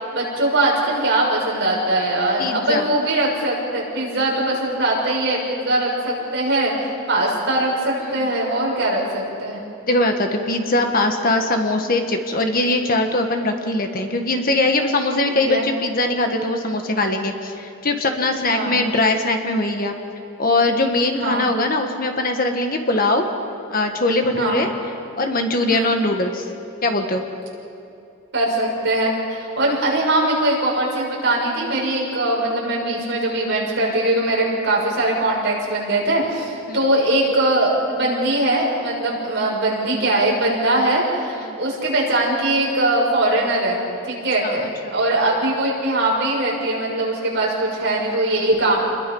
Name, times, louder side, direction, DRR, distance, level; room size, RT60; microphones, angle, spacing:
voice 1, 0.1-9.6 15.3-15.7 18.5-18.8 21.1-21.5 24.3-24.6 25.7-25.9 28.3-48.8, right 1 dB, 50° right, -3 dB, 6.3 m, -21 dB
voice 2, 2.4-2.9 8.0-8.2 9.8-20.0 20.4-23.2 23.7-24.7 25.2-26.5 26.8-27.2 34.1-34.3 36.7-36.8 39.0-39.1 41.3-41.5 44.1-44.9, left 2 dB, 40° left, 4 dB, 1.6 m, -21 dB
29.5 x 21.5 x 5.5 m, 2.7 s
head